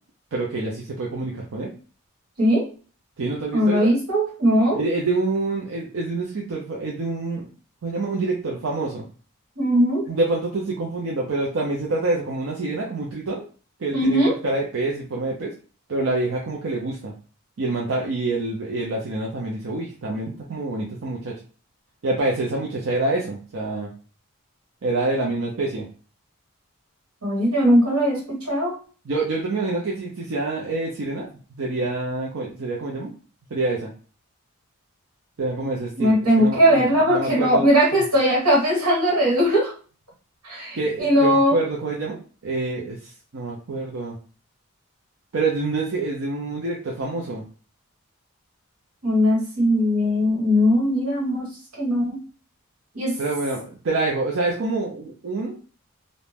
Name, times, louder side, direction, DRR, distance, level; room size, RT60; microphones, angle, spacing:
voice 1, 0.3-1.7 3.2-3.9 4.7-7.5 7.8-9.0 10.1-13.4 13.8-15.5 15.9-17.1 17.6-21.3 22.0-23.9 24.8-25.8 29.1-31.3 31.6-33.1 33.5-33.9 35.4-36.9 37.1-37.6 37.9-38.0 40.7-44.2 45.3-47.4 53.2-55.6, right 2 dB, 65° right, -2 dB, 0.5 m, -26 dB
voice 2, 3.5-4.8 9.6-10.0 13.9-14.3 27.2-28.7 36.0-39.7 40.4-41.6 49.0-51.5 51.8-52.2 52.9-53.2, equal, 85° right, -3 dB, 1.4 m, -19 dB
2.6 x 2.1 x 3.2 m, 0.39 s
head